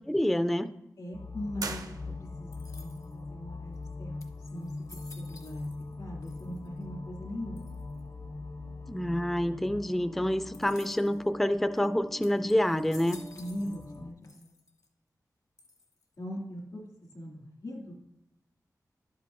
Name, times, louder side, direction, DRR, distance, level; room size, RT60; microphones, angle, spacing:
voice 1, 0.1-0.7 8.9-13.2, equal, 5° left, 10 dB, 0.3 m, -27 dB
voice 2, 1.0-4.1 4.5-4.7 5.1-5.7 6.0-7.6 13.4-14.5 16.2-17.9, equal, 85° left, -2 dB, 2.5 m, -40 dB
sound 1, 1.1-14.1, left 3 dB, 45° left, 0.6 m, -42 dB
sound 2, 1.6-2.6, right 3 dB, 65° right, 0.7 m, -39 dB
sound 3, 2.5-3.3 3.8-3.9 4.2-6.0 6.2-6.8 7.6-8.0 10.5-11.2 11.8-11.9 12.2-14.0 14.2-14.9 15.6-16.2, left 3 dB, 65° left, 0.9 m, -54 dB
11.0 x 8.2 x 2.6 m, 0.84 s
wide cardioid pair, 80°, 7 cm